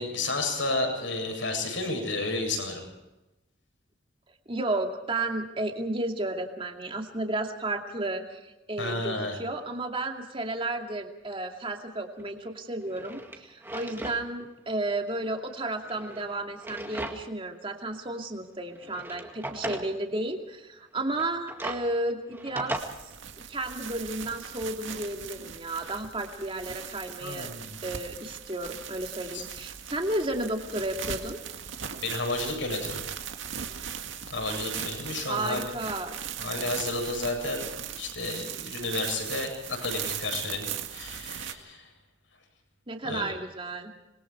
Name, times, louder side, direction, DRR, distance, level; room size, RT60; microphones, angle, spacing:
voice 1, 0.0-2.8 8.8-9.4 27.2-27.8 29.3-29.4 32.0-33.0 34.3-35.6 36.4-37.6 37.9-40.7 40.9-41.9 43.0-43.3, left 2 dB, 75° left, 2 dB, 8.0 m, -31 dB
voice 2, 4.5-22.8 23.5-27.5 27.8-31.4 35.3-36.2 42.9-44.0, right 2 dB, 30° right, 3 dB, 2.5 m, -33 dB
Drawer open or close, 12.2-12.3 12.8-14.2 14.6-14.7 15.7-17.4 17.8-17.9 18.7-19.9 21.1-22.8, right 1 dB, 10° right, 2.0 m, -38 dB
sound 1, 22.8-41.5, right 8 dB, 80° right, 2.0 m, -39 dB
27.0 x 22.0 x 4.7 m, 0.99 s
head